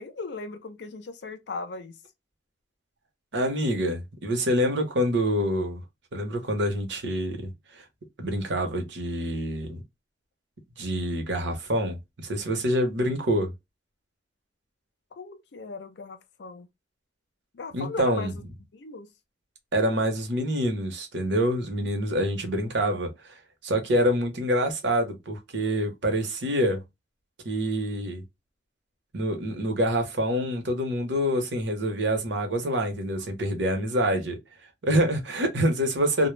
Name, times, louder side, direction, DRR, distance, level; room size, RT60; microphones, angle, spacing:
voice 1, 0.0-2.0 15.1-16.7 17.5-18.3 18.7-19.1, left 4 dB, 65° left, 0.5 m, -38 dB
voice 2, 3.3-5.8 6.1-7.5 8.2-9.8 10.8-13.5 17.7-18.3 19.7-23.1 23.6-26.8 27.4-28.2 29.1-34.4 34.8-36.3, equal, 70° right, 0.8 m, -26 dB
2.1 x 2.0 x 3.1 m
head